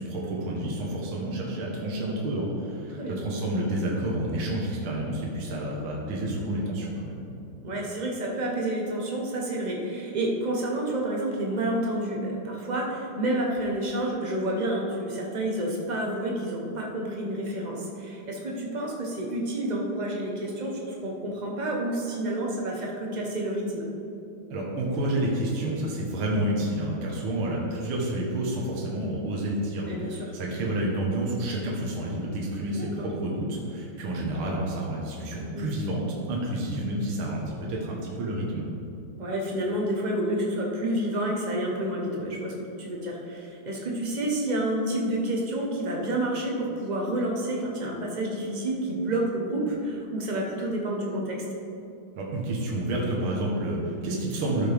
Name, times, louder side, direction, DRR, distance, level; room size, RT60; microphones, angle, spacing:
voice 1, 0.0-7.2 24.5-38.6 52.2-54.7, right 1 dB, 70° right, -3 dB, 2.0 m, -29 dB
voice 2, 7.6-23.9 29.9-30.3 32.7-32.9 35.5-35.7 39.2-51.4, right 1 dB, 30° right, -1 dB, 0.8 m, -29 dB
12.0 x 6.6 x 3.5 m, 2.6 s
omnidirectional pair, 2.4 m